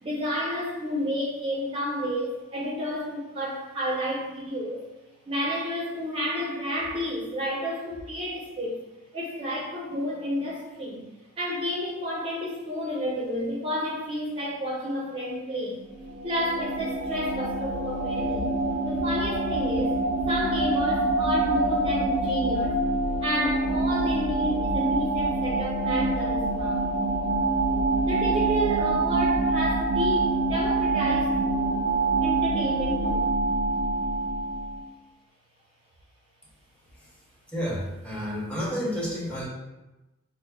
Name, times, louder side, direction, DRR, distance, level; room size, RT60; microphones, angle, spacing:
voice 1, 0.0-4.8 5.3-8.8 9.1-11.1 11.4-15.8 16.2-18.5 18.8-20.0 20.3-22.8 23.2-26.8 28.0-31.4 32.2-33.3, equal, 25° right, -4 dB, 0.5 m, -30 dB
sound 1, 15.9-34.9, right 2 dB, 85° right, 0.4 m, -26 dB
voice 2, 37.5-39.4, equal, 5° left, -6 dB, 0.7 m, -30 dB
5.7 x 2.0 x 2.2 m, 1.0 s
head